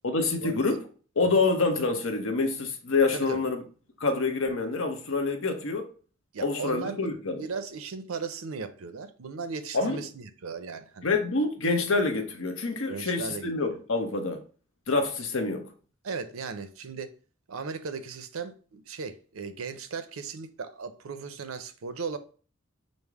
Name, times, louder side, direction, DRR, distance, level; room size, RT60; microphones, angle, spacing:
voice 1, 0.0-0.8 1.2-3.6 4.0-5.9 6.4-7.4 9.7-10.0 11.0-14.4 14.9-15.7, left 3 dB, 65° left, 0.9 m, -27 dB
voice 2, 6.3-11.1 12.9-13.8 16.0-17.1 17.5-22.2, right 5 dB, 75° right, 0.6 m, -37 dB
5.3 x 2.1 x 4.6 m
head